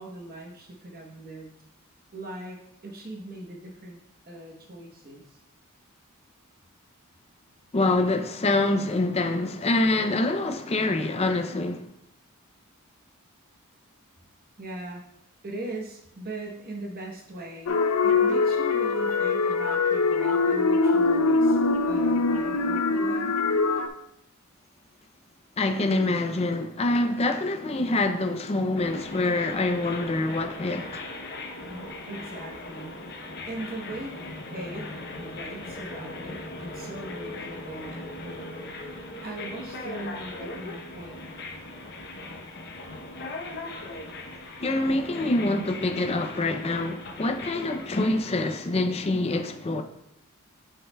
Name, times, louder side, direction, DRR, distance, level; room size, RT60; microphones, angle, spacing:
voice 1, 0.0-1.5 2.1-2.6 2.8-4.0 4.3-5.4 14.6-15.0 15.4-17.8 18.0-21.6 21.9-23.4 31.6-33.2 33.5-34.2 34.5-41.2, right 2 dB, 45° right, 1.0 m, -40 dB
voice 2, 7.7-11.9 25.6-31.0 44.6-49.8, left 2 dB, 30° left, 0.5 m, -25 dB
sound 1, 17.7-23.9, left 3 dB, 80° left, 0.5 m, -23 dB
sound 2, 28.8-48.2, left 2 dB, 50° left, 0.8 m, -39 dB
8.4 x 5.5 x 2.3 m
head